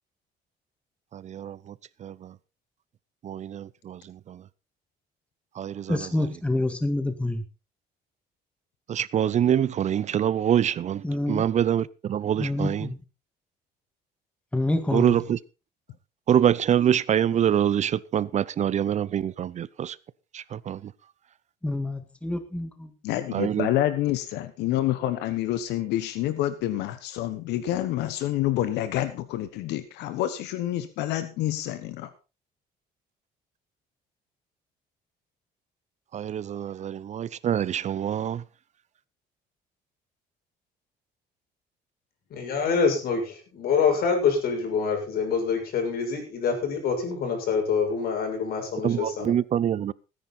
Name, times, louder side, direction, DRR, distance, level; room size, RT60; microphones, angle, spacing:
voice 1, 1.1-1.7 2.0-2.3 3.2-4.4 5.6-6.3 8.9-12.9 14.9-15.4 16.3-20.0 20.3-20.9 23.3-23.7 36.1-38.4 48.8-49.9, right 9 dB, 45° right, 21 dB, 0.6 m, -25 dB
voice 2, 5.9-7.4 11.0-11.5 12.4-13.0 14.5-15.3 21.6-22.9, left 1 dB, 5° left, 8 dB, 1.9 m, -27 dB
voice 3, 23.0-32.1, left 13 dB, 90° left, 12 dB, 1.2 m, -28 dB
voice 4, 42.3-49.3, left 5 dB, 65° left, 4 dB, 6.8 m, -26 dB
18.0 x 10.0 x 4.2 m, 0.32 s
cardioid pair, 110°, 17 cm